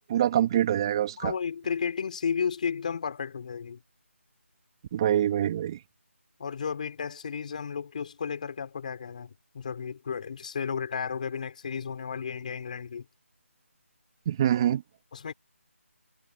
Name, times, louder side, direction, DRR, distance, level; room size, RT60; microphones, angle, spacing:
voice 1, 0.1-1.3 4.9-5.8 14.3-14.8, right 11 dB, 20° right, 2.9 m, -25 dB
voice 2, 1.2-3.8 6.4-13.1 15.1-15.3, left 6 dB, 35° left, 5.2 m, -33 dB
figure-of-eight pair, 170°, 7 cm